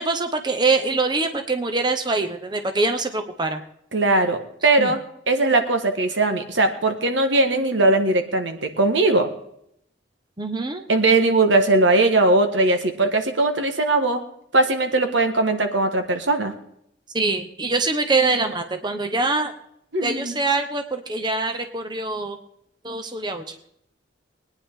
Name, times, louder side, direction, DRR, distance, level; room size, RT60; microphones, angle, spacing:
voice 1, 0.0-3.6 4.8-4.9 10.4-10.8 17.1-19.5 20.0-22.4 22.8-23.5, right 3 dB, 25° right, 7 dB, 0.9 m, -24 dB
voice 2, 3.9-5.0 5.3-9.3 10.9-14.2 14.5-16.5 19.9-20.4, right 2 dB, 80° right, 7 dB, 1.5 m, -20 dB
21.0 x 9.9 x 3.7 m, 0.73 s
head